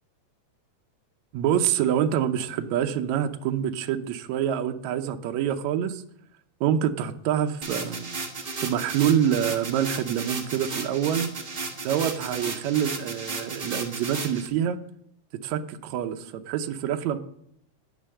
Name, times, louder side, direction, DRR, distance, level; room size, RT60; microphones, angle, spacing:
voice 1, 1.3-6.0 6.6-8.1 8.6-11.3 11.8-14.8 15.4-17.2, right 9 dB, 75° right, 7 dB, 2.0 m, -26 dB
sound 1, 7.6-14.5, right 3 dB, 40° right, 0.7 m, -34 dB
10.0 x 9.1 x 7.5 m, 0.70 s
omnidirectional pair, 3.3 m